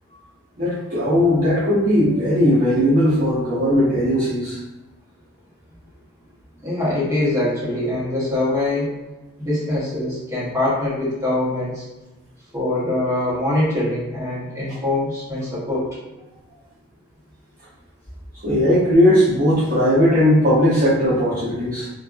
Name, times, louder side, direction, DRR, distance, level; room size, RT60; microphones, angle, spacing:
voice 1, 0.6-4.6 18.4-21.9, equal, 40° right, -10 dB, 0.7 m, -18 dB
voice 2, 6.6-8.9 9.4-11.8 12.5-15.9, left 1 dB, 15° right, -9 dB, 1.0 m, -23 dB
2.6 x 2.3 x 2.3 m, 1.1 s
head